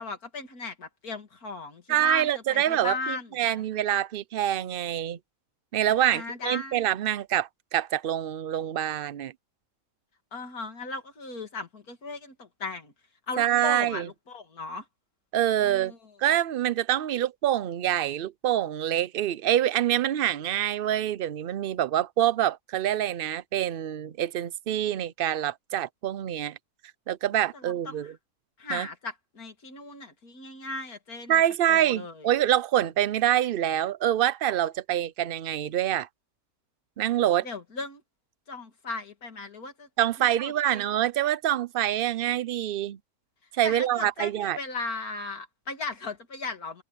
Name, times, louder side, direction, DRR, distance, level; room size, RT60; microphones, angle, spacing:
voice 1, 0.0-3.7 6.1-6.8 10.3-12.9 13.3-14.9 15.6-16.1 27.5-28.1 28.6-31.4 31.7-32.3 37.4-38.0 38.5-39.9 40.2-40.8 43.6-46.8, left 3 dB, 90° left, 2.9 m, -37 dB
voice 2, 1.9-5.2 5.7-9.3 13.4-14.1 15.3-15.9 16.2-26.6 27.1-28.1 28.7-28.9 31.3-36.1 37.0-37.5 40.0-43.0 43.5-44.6, right 11 dB, 55° right, 0.6 m, -26 dB
omnidirectional pair, 1.5 m